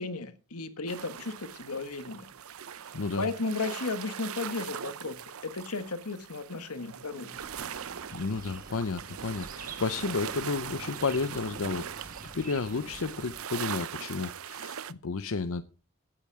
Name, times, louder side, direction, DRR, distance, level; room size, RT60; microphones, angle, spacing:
voice 1, 0.0-2.3 3.2-5.2 5.4-7.4, left 3 dB, 90° left, 1.6 m, -34 dB
sound 1, 0.9-14.9, right 8 dB, 75° right, 0.6 m, -41 dB
voice 2, 2.9-3.3 8.1-15.6, left 4 dB, 70° left, 0.6 m, -32 dB
sound 2, 7.3-13.4, right 3 dB, 40° right, 1.4 m, -47 dB
15.0 x 8.9 x 4.8 m
head